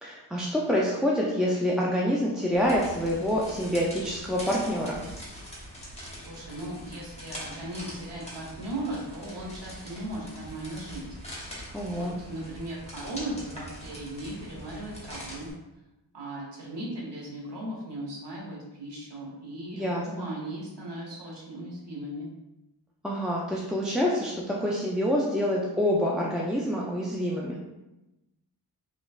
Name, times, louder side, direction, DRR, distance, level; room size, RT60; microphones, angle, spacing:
voice 1, 0.0-5.0 11.7-12.1 19.7-20.3 23.0-27.7, equal, ahead, -4 dB, 0.3 m, -27 dB
sound 1, 2.5-15.5, equal, 15° left, 1.0 m, -43 dB
voice 2, 6.2-11.0 11.9-15.5 16.1-22.3, right 1 dB, 90° right, -3 dB, 1.1 m, -37 dB
3.2 x 3.1 x 2.4 m, 0.99 s
wide cardioid pair, 90°, 41 cm